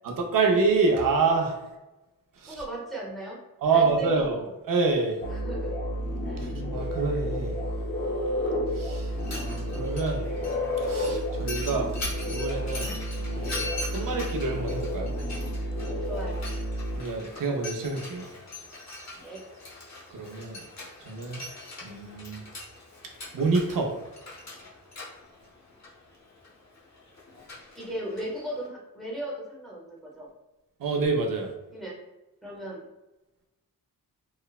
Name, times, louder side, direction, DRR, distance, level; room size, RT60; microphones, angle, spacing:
voice 1, 0.0-1.6 2.4-2.6 3.6-4.4 4.7-5.2 6.4-7.6 8.7-10.3 10.9-11.9 12.3-15.2 17.0-18.3 20.1-20.7 21.0-21.4 21.8-22.4 23.3-23.9 30.8-31.5, right 4 dB, 65° right, 2 dB, 0.6 m, -27 dB
voice 2, 2.5-3.4 3.7-4.5 5.3-5.8 6.2-6.5 16.0-16.5 19.2-19.4 27.8-30.3 31.7-32.0 32.4-32.9, right 1 dB, ahead, -5 dB, 0.7 m, -37 dB
sound 1, 5.2-17.0, equal, 35° left, 0.4 m, -31 dB
Mechanisms, 9.1-28.7, left 2 dB, 50° left, 0.8 m, -42 dB
3.1 x 2.0 x 2.3 m, 1.0 s
wide cardioid pair, 150°, 35 cm